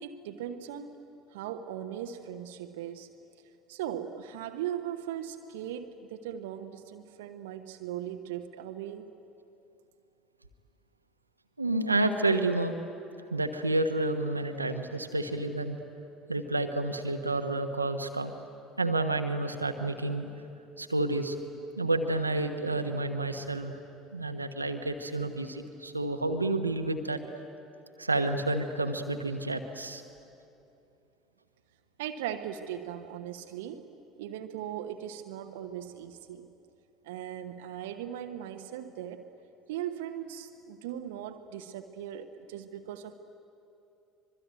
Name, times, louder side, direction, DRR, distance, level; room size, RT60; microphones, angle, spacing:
voice 1, 0.0-1.0 1.3-3.1 3.7-9.1 32.0-33.9 34.2-36.5 37.0-39.3 39.7-43.1, right 10 dB, 65° right, 7 dB, 1.1 m, -39 dB
voice 2, 11.6-12.8 13.3-15.8 16.3-18.3 18.8-20.3 20.8-21.4 21.8-23.7 24.1-27.2 28.0-30.0, right 2 dB, 90° right, 7 dB, 1.2 m, -30 dB
25.0 x 22.5 x 9.3 m, 2.8 s
figure-of-eight pair, 60°, 0 cm